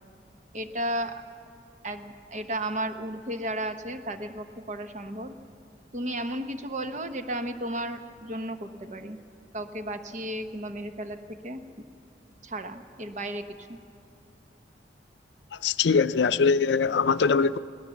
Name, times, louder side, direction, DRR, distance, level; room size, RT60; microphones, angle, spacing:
voice 1, 0.5-1.2 1.8-5.3 5.9-9.2 9.5-11.6 12.4-13.8, right 1 dB, 40° right, 1.0 m, -34 dB
voice 2, 15.5-17.6, left 5 dB, 80° left, 0.5 m, -22 dB
22.0 x 17.0 x 7.1 m
head